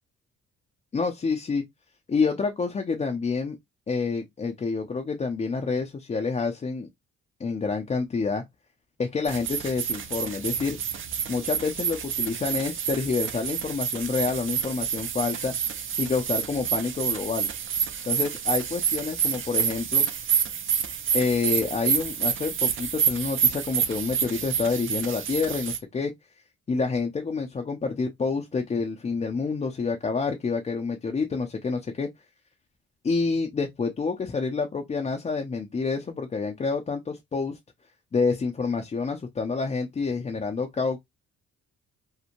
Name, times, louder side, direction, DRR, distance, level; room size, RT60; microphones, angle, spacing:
voice 1, 0.9-1.6 2.1-3.5 3.9-6.9 7.4-8.4 9.0-10.8 11.3-15.5 16.0-17.5 18.1-20.1 21.1-26.1 26.7-32.1 33.0-37.6 38.1-41.0, left 4 dB, 25° left, 0.4 m, -28 dB
sound 1, 9.3-25.8, right 8 dB, 45° right, 0.5 m, -28 dB
2.9 x 2.1 x 2.5 m
cardioid pair, 90°, 30 cm